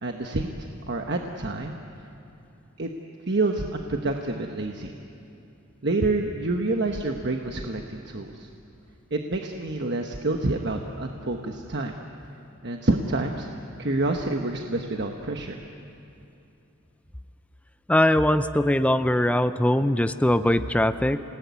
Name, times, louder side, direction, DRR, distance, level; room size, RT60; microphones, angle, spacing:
voice 1, 0.0-1.8 2.8-2.9 3.3-4.9 5.8-8.5 9.1-11.9 12.6-13.5 13.8-15.6, right 2 dB, 50° right, 3 dB, 1.2 m, -28 dB
voice 2, 17.9-21.2, left 1 dB, 5° left, 11 dB, 0.5 m, -21 dB
28.5 x 18.5 x 9.5 m, 2.8 s
head